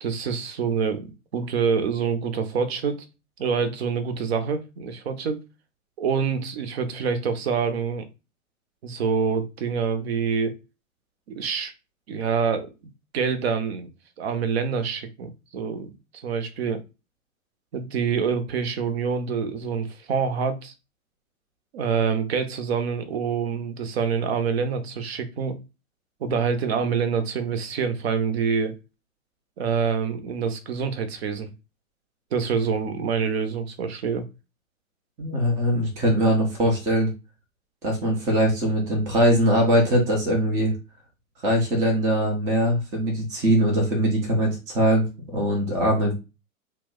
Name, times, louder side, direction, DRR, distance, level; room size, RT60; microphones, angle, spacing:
voice 1, 0.0-3.1 3.4-5.4 6.0-8.1 8.8-10.6 11.3-11.7 12.1-12.7 13.1-13.9 14.2-15.9 16.2-16.8 17.7-20.7 21.7-25.6 26.2-28.7 29.6-31.5 32.3-34.3, right 6 dB, 45° right, 0.7 m, -26 dB
voice 2, 35.2-37.1 37.8-40.7 41.4-46.1, equal, 10° right, 0.4 m, -21 dB
2.7 x 2.1 x 3.6 m
figure-of-eight pair, 115°, 43 cm